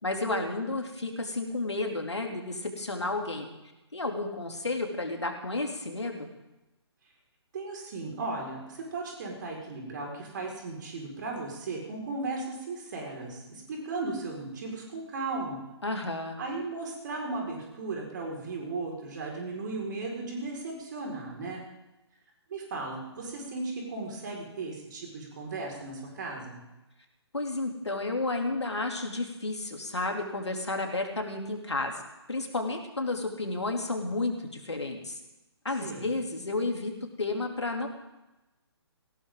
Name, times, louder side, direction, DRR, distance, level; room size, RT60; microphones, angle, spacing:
voice 1, 0.0-3.5 3.9-6.3 15.8-16.4 27.3-32.0 32.3-35.2 35.6-37.9, left 2 dB, 75° left, 3 dB, 3.0 m, -32 dB
voice 2, 7.5-15.6 16.4-21.6 22.5-26.6 35.8-36.1, right 3 dB, 45° right, -1 dB, 4.9 m, -36 dB
19.5 x 16.5 x 3.8 m, 1.0 s
figure-of-eight pair, 135°, 15 cm